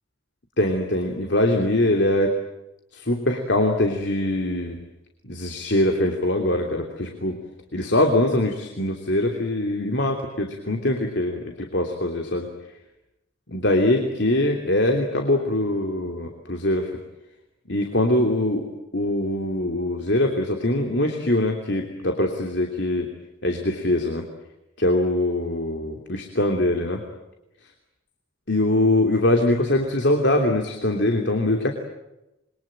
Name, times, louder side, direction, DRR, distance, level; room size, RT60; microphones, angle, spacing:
voice 1, 0.6-2.3 2.9-4.8 5.2-7.4 7.7-12.5 13.5-16.9 17.7-23.1 23.4-24.3 24.8-27.0 28.5-31.7, left 1 dB, 65° left, 3 dB, 3.1 m, -23 dB
27.0 x 23.5 x 9.1 m, 0.92 s
head